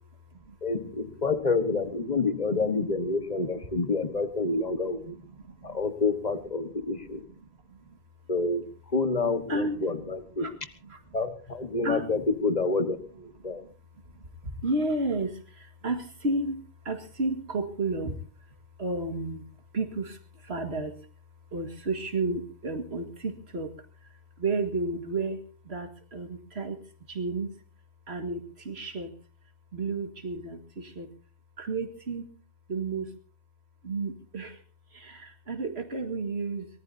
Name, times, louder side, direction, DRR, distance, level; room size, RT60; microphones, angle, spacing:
voice 1, 0.6-5.2 5.6-7.3 8.3-10.5 11.1-13.6, left 3 dB, 40° left, 10 dB, 1.4 m, -28 dB
voice 2, 5.4-5.8 6.8-6.9 7.1-8.0 9.5-9.8 10.4-10.5 10.9-11.0 11.8-12.0 13.4-13.7 14.1-16.6 16.8-18.2 18.8-19.5 19.7-20.9 21.5-23.7 24.4-26.8 27.1-27.5 28.1-29.1 29.7-31.1 31.6-32.3 32.7-33.1 33.8-34.6 34.9-36.7, right 2 dB, 75° right, 6 dB, 2.1 m, -32 dB
23.0 x 18.5 x 2.7 m, 0.37 s
omnidirectional pair, 1.1 m